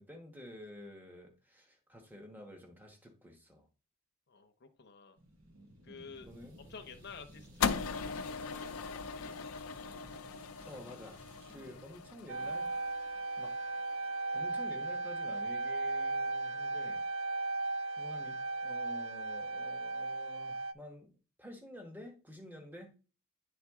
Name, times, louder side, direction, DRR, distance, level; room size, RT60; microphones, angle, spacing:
voice 1, 0.0-3.6 5.9-6.6 10.6-11.2 11.5-12.7 13.4-13.6 14.3-17.0 18.0-21.1 21.4-22.9, left 1 dB, 10° right, 1.1 m, -50 dB
voice 2, 4.3-5.2 5.8-6.3 6.6-7.8 8.0-8.1 8.5-9.6, left 5 dB, 50° left, 0.7 m, -51 dB
sound 1, 5.2-13.2, right 1 dB, 85° right, 1.9 m, -58 dB
sound 2, 7.6-13.9, left 6 dB, 85° left, 0.5 m, -39 dB
sound 3, 12.3-20.7, right 2 dB, 60° right, 0.5 m, -36 dB
9.3 x 3.7 x 3.6 m
head